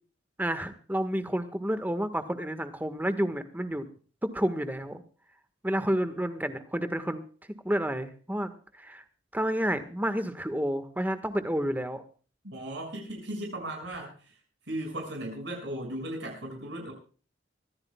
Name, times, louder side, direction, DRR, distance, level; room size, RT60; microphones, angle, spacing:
voice 1, 0.4-3.9 4.2-5.0 5.6-7.2 7.6-9.0 9.3-12.0, equal, 10° right, 10 dB, 1.5 m, -30 dB
voice 2, 12.4-14.4 14.7-16.9, right 1 dB, 70° right, 1 dB, 6.4 m, -36 dB
24.0 x 15.5 x 2.3 m, 0.39 s
head